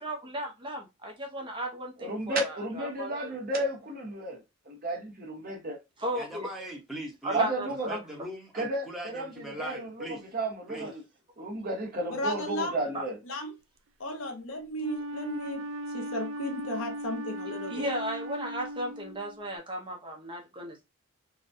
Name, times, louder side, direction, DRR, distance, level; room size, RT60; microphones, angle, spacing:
voice 1, 0.0-3.3 6.0-6.5 7.2-8.0 10.8-10.9 12.9-13.0 17.7-20.8, equal, 20° right, 0.8 m, -35 dB
voice 2, 2.0-4.4 4.7-5.8 7.3-7.9 8.5-8.9 9.1-9.2 9.6-9.9 10.3-11.0 11.4-13.2, right 2 dB, 40° right, 1.1 m, -32 dB
voice 3, 6.1-7.4 7.7-10.3 10.7-10.9, right 1 dB, ahead, 1.0 m, -41 dB
voice 4, 12.1-12.8 13.2-13.6 14.0-15.6 15.9-17.9, left 1 dB, 60° left, 0.7 m, -34 dB
Wind instrument woodwind instrument, 14.8-19.5, right 1 dB, 60° right, 0.3 m, -38 dB
3.9 x 2.2 x 2.6 m
head